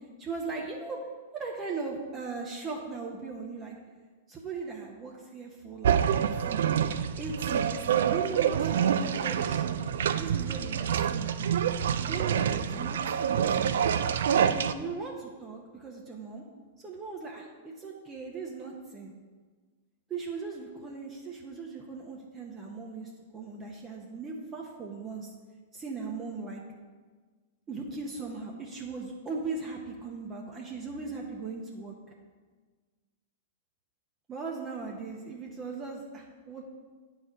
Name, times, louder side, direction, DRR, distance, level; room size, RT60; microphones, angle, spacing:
voice 1, 0.2-1.0 1.3-3.8 4.3-6.7 7.2-9.8 10.1-11.3 12.0-13.4 14.4-16.4 16.8-19.1 20.1-25.3 25.7-26.6 27.7-31.9 34.3-36.6, right 4 dB, 25° right, -1 dB, 1.0 m, -38 dB
sound 1, 5.8-14.7, right 8 dB, 70° right, 0.4 m, -27 dB
9.2 x 4.2 x 5.1 m, 1.4 s
hypercardioid pair, 110°, 0 cm